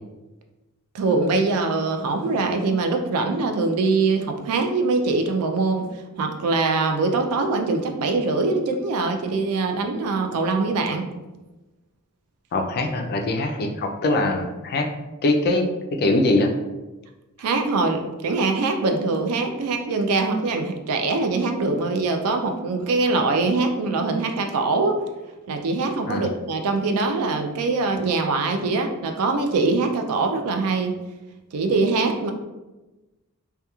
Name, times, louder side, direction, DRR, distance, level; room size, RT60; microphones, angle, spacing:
voice 1, 0.9-11.1 17.4-25.0 25.5-31.0 31.5-32.3, right 3 dB, 75° right, 4 dB, 0.3 m, -23 dB
voice 2, 12.5-14.9 15.2-15.7 16.0-16.5 26.0-26.2, left 2 dB, 45° left, 3 dB, 0.3 m, -22 dB
2.9 x 2.2 x 2.3 m, 1.1 s
head